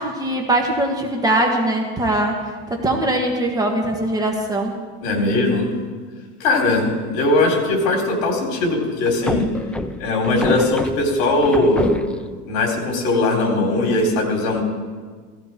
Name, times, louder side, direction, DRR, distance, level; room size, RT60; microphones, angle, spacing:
voice 1, 0.0-2.4 2.7-4.7, right 1 dB, 10° right, 1 dB, 1.5 m, -21 dB
voice 2, 5.0-5.7 6.4-9.5 10.0-11.9 12.5-14.6, left 2 dB, 60° left, 1 dB, 3.8 m, -19 dB
sound 1, 9.0-12.4, left 1 dB, 5° left, 0.4 m, -27 dB
16.5 x 15.0 x 4.5 m, 1.5 s
supercardioid pair, 145°, 31 cm